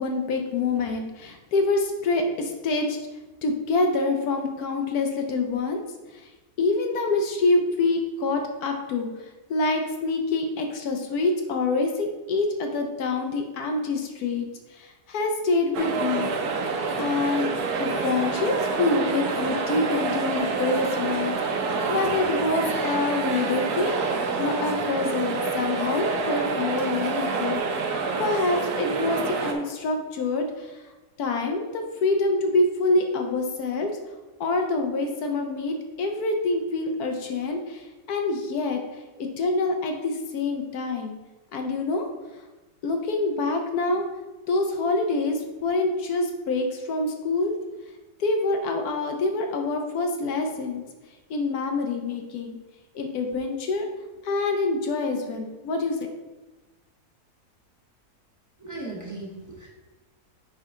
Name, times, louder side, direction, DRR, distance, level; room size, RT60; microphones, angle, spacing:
voice 1, 0.0-3.0 3.4-5.8 6.1-6.3 6.6-16.3 17.0-17.5 17.8-24.0 24.4-30.8 31.2-33.9 34.4-41.1 41.5-42.1 42.8-44.1 44.5-47.5 48.2-50.8 51.3-52.6 52.9-53.9 54.2-56.0, left 3 dB, 75° left, 4 dB, 1.2 m, -26 dB
sound 1, 15.7-29.5, right 4 dB, 75° right, 1.3 m, -27 dB
voice 2, 58.6-59.7, right 2 dB, 10° right, -5 dB, 1.4 m, -37 dB
9.6 x 3.7 x 3.7 m, 1.1 s
omnidirectional pair, 1.7 m